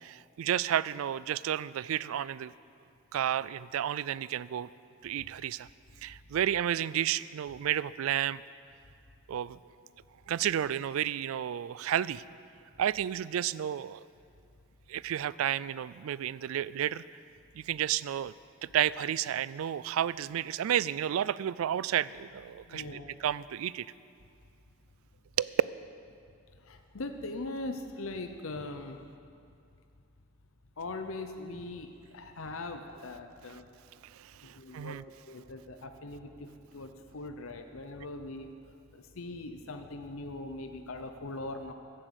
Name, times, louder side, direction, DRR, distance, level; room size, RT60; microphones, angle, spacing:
voice 1, 0.0-2.5 3.1-4.7 5.0-5.7 6.0-8.4 9.3-9.6 10.3-12.2 12.8-14.0 14.9-17.0 17.5-18.3 18.6-23.9 25.4-25.5 34.1-35.0, right 10 dB, 80° right, 19 dB, 0.3 m, -31 dB
voice 2, 22.7-23.1 26.6-29.0 30.8-33.6 34.4-35.0 35.3-38.5 38.9-41.7, left 2 dB, 75° left, 6 dB, 0.8 m, -41 dB
14.0 x 7.8 x 8.1 m, 2.4 s
head